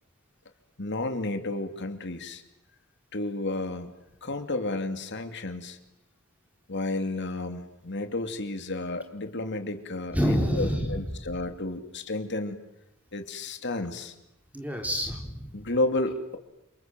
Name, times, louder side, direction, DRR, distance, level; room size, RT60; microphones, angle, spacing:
voice 1, 0.8-2.4 3.1-3.9 4.2-5.8 6.7-12.7 13.1-14.1 15.5-16.4, left 2 dB, 60° left, 7 dB, 2.9 m, -32 dB
voice 2, 10.1-11.0 14.5-15.5, equal, 5° right, 3 dB, 4.1 m, -27 dB
29.0 x 26.5 x 7.8 m, 0.86 s
head